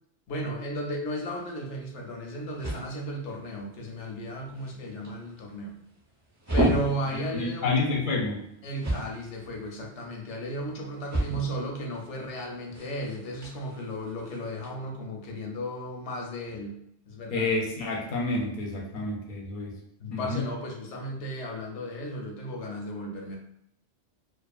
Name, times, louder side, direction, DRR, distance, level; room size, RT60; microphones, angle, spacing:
voice 1, 0.3-5.8 6.5-7.8 8.6-16.7 17.1-17.5 20.0-23.4, equal, 90° left, 0 dB, 0.9 m, -35 dB
sound 1, 1.3-14.7, right 1 dB, 20° right, 0.7 m, -35 dB
voice 2, 7.3-8.4 17.3-19.7 20.1-20.4, left 3 dB, 55° left, -1 dB, 0.6 m, -29 dB
2.4 x 2.4 x 2.3 m, 0.74 s
omnidirectional pair, 1.2 m